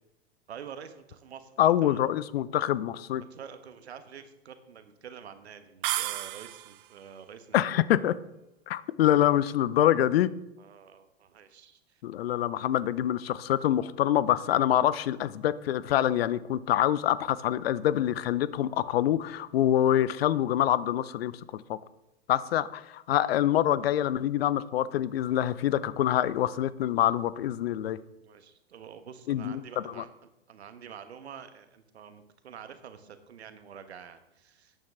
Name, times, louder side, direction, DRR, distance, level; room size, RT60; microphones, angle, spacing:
voice 1, 0.5-2.0 3.3-7.8 9.2-9.4 10.6-12.0 28.2-30.1 30.5-34.7, right 7 dB, 80° right, 10 dB, 1.3 m, -47 dB
voice 2, 1.6-3.2 7.5-8.1 8.7-10.3 12.0-21.8 22.3-28.0 29.3-30.0, left 12 dB, 70° left, 18 dB, 0.7 m, -26 dB
sound 1, 5.8-6.9, right 15 dB, 55° right, 0.7 m, -32 dB
12.5 x 9.0 x 3.6 m, 0.92 s
hypercardioid pair, 105°, 32 cm